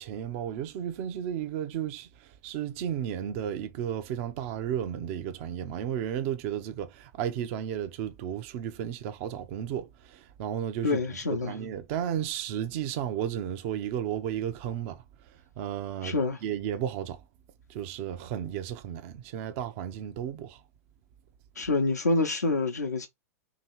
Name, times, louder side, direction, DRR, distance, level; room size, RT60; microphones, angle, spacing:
voice 1, 0.0-11.0 11.3-16.2 16.4-17.2 17.7-20.6, right 10 dB, 50° right, 0.7 m, -33 dB
voice 2, 10.8-11.5 16.0-16.4 21.6-23.1, left 3 dB, 85° left, 0.7 m, -27 dB
3.0 x 3.0 x 4.5 m
figure-of-eight pair, 95°, 9 cm